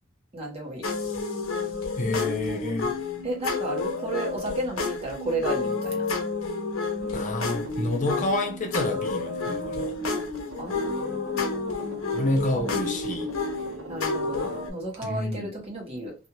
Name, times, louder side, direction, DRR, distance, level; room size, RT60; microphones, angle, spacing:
voice 1, 0.3-0.9 3.2-6.1 10.6-12.1 13.9-16.1, right 2 dB, 30° right, 1.1 m, -33 dB
sound 1, 0.8-14.7, left 3 dB, 75° left, 0.7 m, -30 dB
voice 2, 2.0-2.9 7.1-10.0 12.1-13.3 15.0-15.5, left 2 dB, 40° left, 0.5 m, -28 dB
sound 2, 7.0-15.1, right 1 dB, 75° right, 0.8 m, -44 dB
2.6 x 2.4 x 2.9 m
head